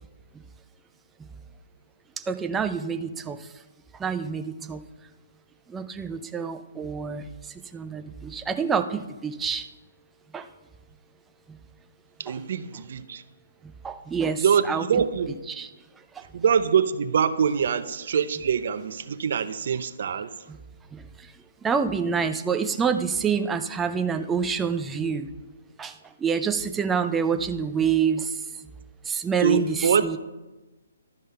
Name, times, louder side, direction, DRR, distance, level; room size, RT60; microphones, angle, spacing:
voice 1, 2.2-3.5 3.9-4.8 5.7-9.7 10.3-10.5 11.5-11.6 12.3-12.4 13.6-14.8 15.5-15.7 16.1-16.3 20.5-20.6 20.9-21.3 21.6-25.3 25.8-28.4 29.0-30.2, right 6 dB, 10° right, 8 dB, 0.5 m, -27 dB
voice 2, 12.2-13.2 14.4-15.3 16.3-20.3 29.4-30.1, right 7 dB, 55° right, 12 dB, 0.7 m, -24 dB
12.0 x 5.5 x 5.5 m, 1.1 s
hypercardioid pair, 155°, 0 cm